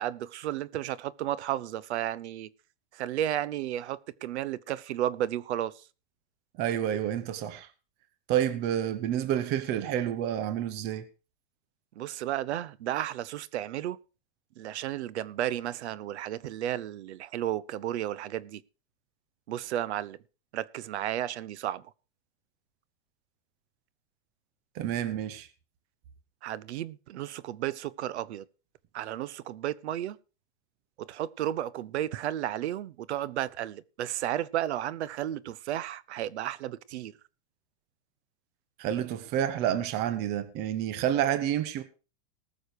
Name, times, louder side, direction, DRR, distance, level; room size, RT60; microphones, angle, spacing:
voice 1, 0.0-2.5 2.9-5.7 12.0-14.0 14.6-18.6 19.5-20.2 20.5-21.8 26.4-28.4 28.9-30.2 31.0-37.1, right 12 dB, 70° right, 0.9 m, -33 dB
voice 2, 6.6-7.7 8.3-11.0 24.7-25.5 38.8-41.8, right 10 dB, 30° right, 1.0 m, -29 dB
19.0 x 6.5 x 4.8 m
supercardioid pair, 160°, 35 cm